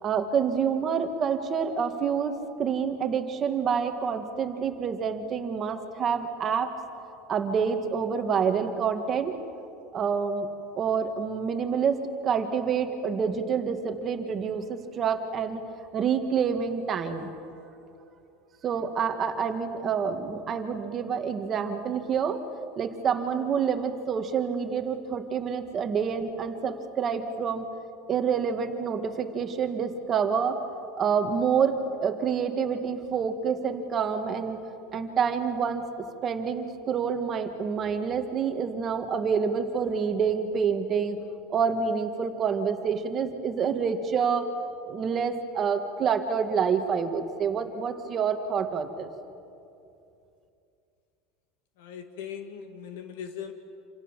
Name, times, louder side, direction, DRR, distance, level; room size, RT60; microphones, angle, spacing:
voice 1, 0.0-6.7 7.3-9.3 9.9-10.5 10.8-15.6 15.9-17.3 18.6-22.4 22.8-27.7 28.1-34.6 34.9-41.2 41.5-44.5 44.9-49.1, right 6 dB, 25° right, 6 dB, 1.8 m, -27 dB
voice 2, 51.8-53.5, left 8 dB, 80° left, 6 dB, 2.2 m, -39 dB
28.0 x 27.0 x 7.5 m, 2.7 s
supercardioid pair, 165°, 0 cm